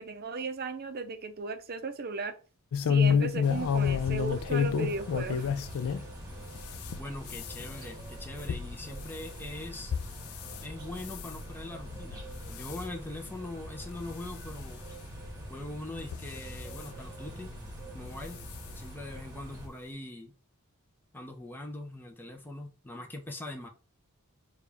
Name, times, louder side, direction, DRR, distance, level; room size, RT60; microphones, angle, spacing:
voice 1, 0.0-2.3 2.8-5.5, right 4 dB, 45° right, 0.6 m, -36 dB
sound 1, 2.7-6.0 6.5-10.6 11.0-11.4 11.9-12.2 12.5-12.8 13.4-13.5 13.9-14.0 15.1-15.2 16.0-16.8 18.0-18.1 18.5-18.6 18.9-19.0, left 7 dB, 70° left, 0.4 m, -30 dB
sound 2, 3.4-19.7, equal, 15° right, 1.3 m, -44 dB
voice 2, 7.0-9.9 10.6-14.8 15.5-17.5 17.9-18.4 18.7-20.3 21.1-23.7, left 2 dB, 10° left, 0.5 m, -42 dB
6.6 x 2.3 x 3.4 m
head